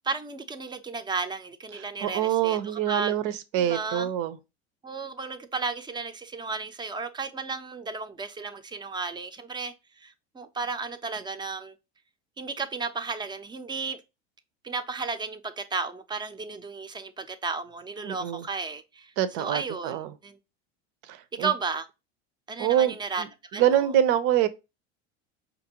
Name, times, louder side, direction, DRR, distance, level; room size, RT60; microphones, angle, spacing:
voice 1, 0.0-3.1 3.6-4.1 4.8-11.7 12.4-14.0 14.6-19.1 19.4-20.4 21.4-21.9 22.5-23.2 23.5-23.9, right 4 dB, 15° right, 0.6 m, -33 dB
voice 2, 1.7-4.4 18.0-18.4 19.2-20.1 21.1-21.5 22.6-23.3 23.5-24.5, right 11 dB, 65° right, 0.7 m, -25 dB
5.1 x 2.6 x 2.8 m
supercardioid pair, 110°, 31 cm